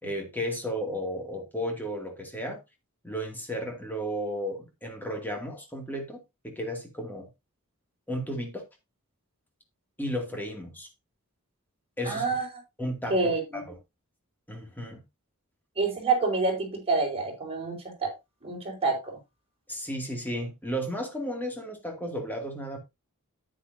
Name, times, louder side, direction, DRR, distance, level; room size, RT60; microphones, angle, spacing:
voice 1, 0.0-2.6 3.0-6.2 6.4-7.3 8.1-8.6 10.0-10.9 12.0-12.3 12.8-13.8 14.5-15.0 19.7-22.8, equal, 10° left, 2.4 m, -34 dB
voice 2, 12.1-12.4 13.1-13.6 15.8-18.1 18.4-19.2, right 3 dB, 25° right, 4.5 m, -27 dB
9.8 x 9.0 x 2.7 m
head